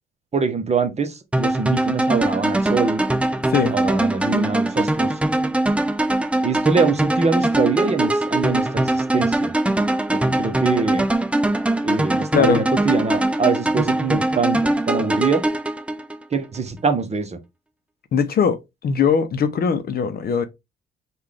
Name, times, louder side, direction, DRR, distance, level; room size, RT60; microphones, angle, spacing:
voice 1, 0.3-3.0 3.7-5.2 6.4-9.5 10.4-11.0 11.8-15.4 16.3-17.4, right 5 dB, 35° right, 0.9 m, -23 dB
sound 1, 1.3-16.4, right 1 dB, 5° right, 0.3 m, -21 dB
voice 2, 12.3-12.7 18.1-20.4, left 6 dB, 50° left, 0.6 m, -20 dB
3.6 x 2.4 x 3.3 m
cardioid pair, 90°, 20 cm